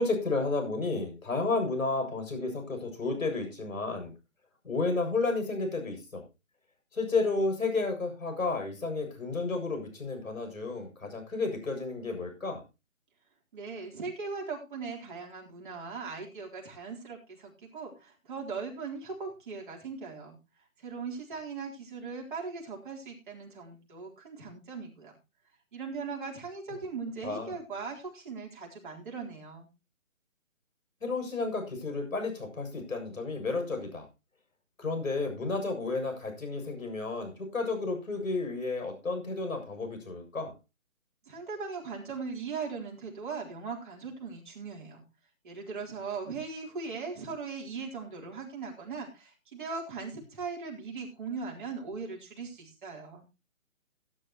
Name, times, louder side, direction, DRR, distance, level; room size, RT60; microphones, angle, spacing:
voice 1, 0.0-4.1 4.6-6.2 6.9-12.6 27.2-27.5 31.0-34.1 34.8-40.5, left 3 dB, 80° left, 5 dB, 7.3 m, -32 dB
voice 2, 13.5-20.4 20.8-25.1 25.7-29.7 41.3-45.0 45.4-53.3, right 4 dB, 35° right, -2 dB, 3.9 m, -39 dB
17.0 x 10.0 x 3.0 m, 0.27 s
hypercardioid pair, 165°, 41 cm